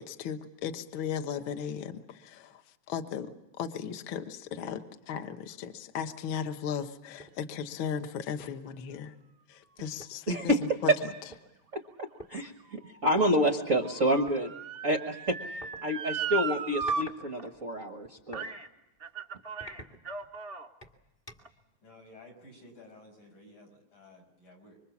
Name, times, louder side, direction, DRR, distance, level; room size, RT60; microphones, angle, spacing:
voice 1, 0.0-2.6 2.9-9.1 9.5-10.4 10.8-10.9, left 7 dB, 60° left, 7 dB, 1.4 m, -36 dB
sound 1, 7.2-7.4 7.8-8.0 8.4-8.7 9.6-9.7 10.0-11.4 12.2-12.3 13.1-13.3 14.3-14.4 15.6-15.8 16.5-17.2 17.5-18.5 19.0-19.1 19.6-20.4 20.8-21.6, equal, 20° left, 1.3 m, -49 dB
voice 2, 10.3-10.6 10.9-11.0 11.7-14.5 14.8-15.4 15.8-18.5, equal, 70° right, 6 dB, 0.7 m, -28 dB
Motor vehicle (road) / Siren, 11.8-17.0 17.4-17.5 18.3-18.7 19.0-20.7 21.4-21.5, right 5 dB, 40° right, 1.0 m, -37 dB
voice 3, 21.8-24.8, left 2 dB, 75° left, 3 dB, 7.3 m, -53 dB
26.0 x 24.5 x 7.2 m, 0.94 s
omnidirectional pair, 3.6 m